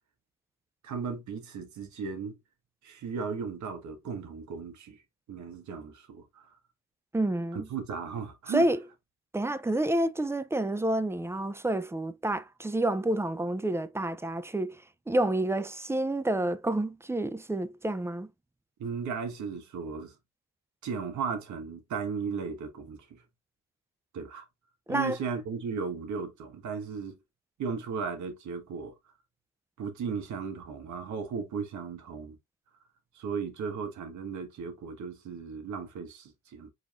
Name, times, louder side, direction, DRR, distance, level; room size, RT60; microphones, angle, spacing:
voice 1, 0.8-2.4 2.8-5.0 5.3-6.6 7.5-8.6 18.8-20.1 20.8-23.2 24.1-24.5 24.9-27.2 27.6-28.9 29.8-32.4 33.1-36.7, right 6 dB, 70° right, 1.6 m, -36 dB
voice 2, 7.1-7.7 8.5-8.8 9.3-18.3 24.9-25.2, right 1 dB, 10° right, 0.5 m, -29 dB
5.2 x 3.9 x 2.5 m
cardioid pair, 90°, 30 cm